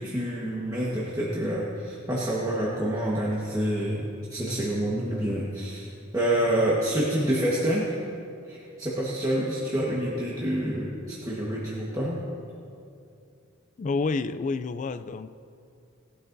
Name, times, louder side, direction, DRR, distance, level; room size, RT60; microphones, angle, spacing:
voice 1, 0.0-5.9 6.1-7.8 8.5-12.2, right 1 dB, 20° right, -6 dB, 1.3 m, -27 dB
voice 2, 13.8-15.3, left 4 dB, 35° left, 12 dB, 0.3 m, -29 dB
19.5 x 11.5 x 2.7 m, 2.5 s
head